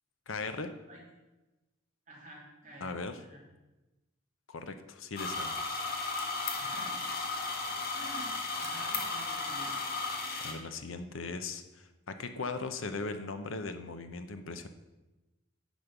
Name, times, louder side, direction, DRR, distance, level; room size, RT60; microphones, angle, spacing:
voice 1, 0.3-0.7 2.8-3.2 4.5-5.8 10.4-14.7, left 3 dB, 80° left, 8 dB, 0.8 m, -39 dB
voice 2, 2.1-3.4 6.6-7.0 7.9-8.3 8.6-9.7, right 1 dB, 40° right, -4 dB, 3.1 m, -49 dB
sound 1, 5.2-10.5, left 3 dB, 50° left, 1.4 m, -35 dB
10.5 x 5.3 x 5.9 m, 1.1 s
head